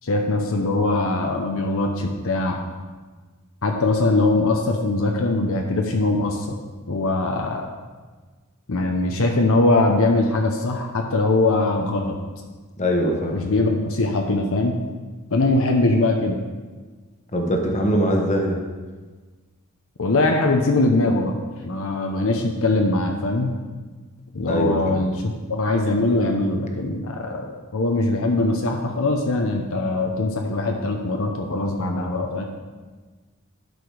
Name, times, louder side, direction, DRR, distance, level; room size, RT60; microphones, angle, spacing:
voice 1, 0.0-2.6 3.6-6.6 6.9-7.6 8.7-12.2 13.3-14.8 15.3-16.4 20.0-21.3 21.6-23.5 24.3-27.5 27.7-32.4, left 2 dB, 65° left, 2 dB, 0.8 m, -21 dB
voice 2, 12.8-13.4 17.3-18.6 24.5-25.0, equal, 30° left, 2 dB, 1.2 m, -22 dB
12.0 x 4.9 x 4.9 m, 1.4 s
head